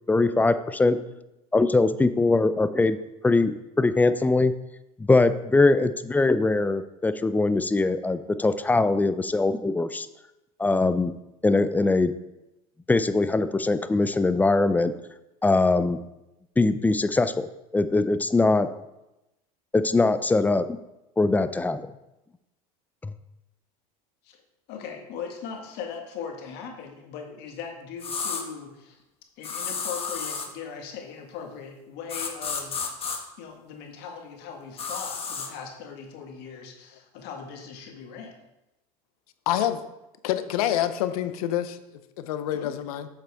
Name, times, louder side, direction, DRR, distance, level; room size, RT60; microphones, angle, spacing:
voice 1, 0.1-1.0 1.5-3.0 3.2-4.5 5.1-10.1 10.6-11.1 11.4-12.1 12.9-14.9 15.4-16.0 16.6-17.5 17.7-18.7 19.7-20.7 21.2-21.9 23.0-23.1, left 3 dB, 10° left, 12 dB, 0.4 m, -22 dB
voice 2, 24.7-29.0 29.4-32.9 33.4-38.3 42.5-42.7, left 6 dB, 60° left, 3 dB, 1.6 m, -39 dB
sound 1, 28.0-28.4 29.4-30.5 32.1-33.2 34.8-35.5, left 5 dB, 30° left, 1.3 m, -31 dB
voice 3, 39.5-39.8 40.2-41.8 42.2-43.1, left 11 dB, 80° left, 12 dB, 0.7 m, -27 dB
7.7 x 7.4 x 3.5 m, 0.95 s
supercardioid pair, 100°, 19 cm